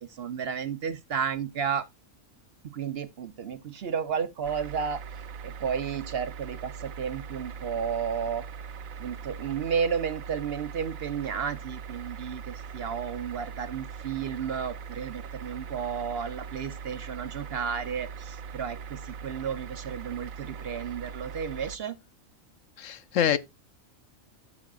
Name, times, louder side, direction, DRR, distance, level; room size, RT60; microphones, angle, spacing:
voice 1, 0.0-1.9 2.6-5.0 5.4-8.4 9.0-22.0, right 7 dB, 55° right, 0.8 m, -32 dB
sound 1, 4.4-21.8, right 6 dB, 80° right, 1.1 m, -41 dB
voice 2, 22.8-23.4, left 9 dB, 70° left, 1.0 m, -25 dB
14.0 x 6.0 x 2.4 m
omnidirectional pair, 1.4 m